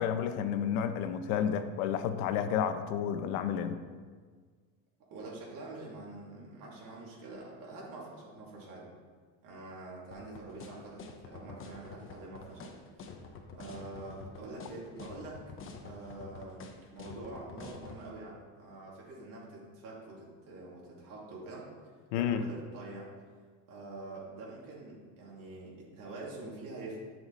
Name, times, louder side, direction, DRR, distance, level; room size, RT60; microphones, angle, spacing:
voice 1, 0.0-3.8 22.1-22.4, left 8 dB, 80° left, 9 dB, 0.9 m, -31 dB
voice 2, 5.1-8.9 9.4-12.8 13.1-15.5 15.8-21.7 22.1-23.1 23.7-27.0, right 2 dB, 55° right, -4 dB, 2.9 m, -46 dB
sound 1, 10.1-18.0, left 5 dB, 30° left, 1.0 m, -47 dB
11.0 x 6.0 x 4.2 m, 1.5 s
cardioid pair, 135°, 40 cm